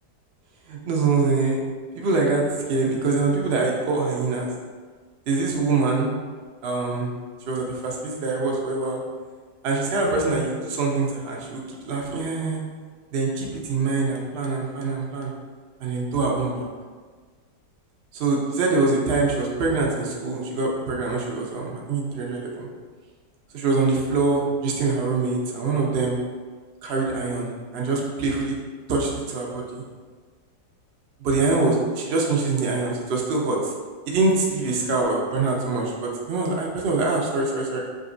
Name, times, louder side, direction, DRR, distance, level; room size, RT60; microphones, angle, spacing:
voice 1, 0.7-1.6 2.0-2.4 2.7-4.5 5.3-6.1 6.6-7.1 7.5-9.0 9.6-12.6 13.1-15.3 15.8-16.7 18.2-22.7 23.5-26.2 26.8-28.5 28.9-29.8 31.2-33.6 34.1-37.8, right 3 dB, 70° right, -2 dB, 0.5 m, -24 dB
5.1 x 2.8 x 2.6 m, 1.5 s
omnidirectional pair, 1.8 m